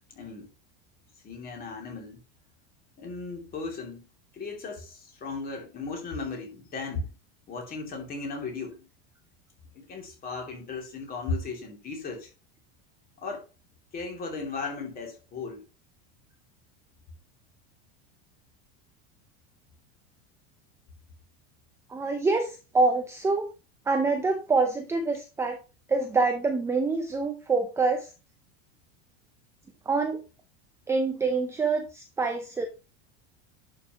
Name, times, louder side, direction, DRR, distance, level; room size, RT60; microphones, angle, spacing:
voice 1, 0.1-0.5 1.2-2.2 3.0-4.1 4.3-7.1 7.5-8.9 9.7-12.3 13.2-13.5 13.9-15.6, left 3 dB, 25° left, 2.9 m, -36 dB
voice 2, 21.9-23.5 23.9-25.6 25.9-28.1 29.9-30.2 30.9-32.7, right 3 dB, 10° right, 0.6 m, -26 dB
11.0 x 5.9 x 3.0 m
supercardioid pair, 160°, 34 cm